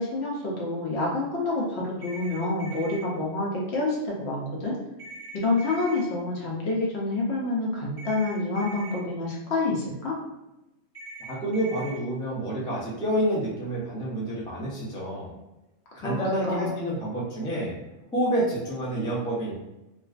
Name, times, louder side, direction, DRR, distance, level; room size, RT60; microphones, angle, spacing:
voice 1, 0.0-4.8 5.3-10.2 15.9-16.9, left 2 dB, 65° left, -3 dB, 0.8 m, -28 dB
sound 1, 2.0-3.0 5.0-6.0 8.0-9.0 10.9-12.0, right 3 dB, 40° left, 1.0 m, -42 dB
voice 2, 11.3-15.3 16.0-17.7 18.1-19.5, right 1 dB, 5° left, -7 dB, 0.3 m, -28 dB
2.3 x 2.3 x 2.3 m, 0.96 s
omnidirectional pair, 1.3 m